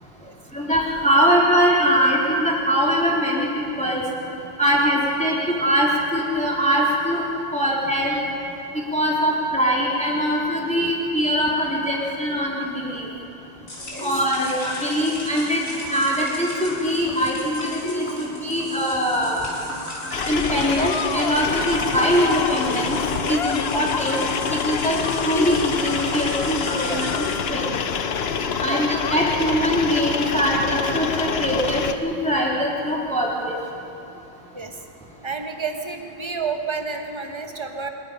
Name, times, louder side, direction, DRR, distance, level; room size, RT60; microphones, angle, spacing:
voice 1, 0.5-4.0 4.6-7.2 7.5-8.2 8.9-13.1 14.0-19.5 20.3-23.0 23.3-25.0 25.2-27.2 27.5-27.7 28.6-33.5, equal, 5° left, -5 dB, 3.7 m, -22 dB
sound 1, 13.7-27.4, left 1 dB, 40° left, 4.8 m, -34 dB
sound 2, 20.1-31.9, left 6 dB, 80° left, 0.5 m, -26 dB
voice 2, 35.1-37.9, right 5 dB, 15° right, 4 dB, 1.3 m, -31 dB
25.5 x 21.5 x 5.3 m, 2.8 s
omnidirectional pair, 2.3 m